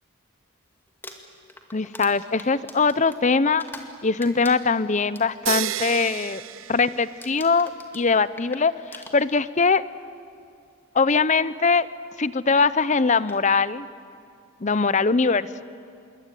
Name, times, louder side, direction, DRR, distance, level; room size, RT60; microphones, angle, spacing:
Crumpling crinkling, 0.9-3.9 4.2-5.6 6.0-6.3 6.6-6.9 7.2-9.6 10.5-10.6 12.6-12.7 13.1-13.4, left 2 dB, 10° left, 2.1 m, -44 dB
voice 1, 1.7-3.6 4.0-6.4 6.7-9.8 10.9-11.9 12.2-13.9 14.6-15.6, left 4 dB, 35° left, 16 dB, 0.7 m, -22 dB
sound 1, 5.5-7.6, right 12 dB, 70° right, 0.6 m, -31 dB
27.0 x 23.0 x 9.3 m, 2.4 s
head